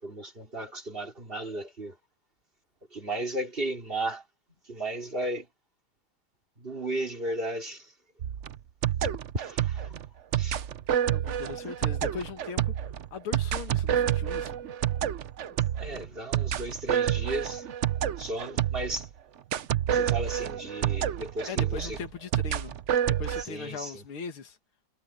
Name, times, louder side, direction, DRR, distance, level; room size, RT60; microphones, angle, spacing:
voice 1, 0.0-2.0 2.9-4.2 4.6-5.5 6.6-7.9 9.0-9.9 10.4-10.6 15.7-17.7 18.2-19.1 19.9-22.0 23.4-24.0, right 1 dB, 25° right, 3.3 m, -35 dB
sound 1, 8.2-19.1 19.5-23.4, right 10 dB, 90° right, 0.6 m, -29 dB
voice 2, 11.1-12.7 13.1-14.5 21.5-22.8 23.1-24.6, left 6 dB, 85° left, 2.6 m, -39 dB
omnidirectional pair, 2.3 m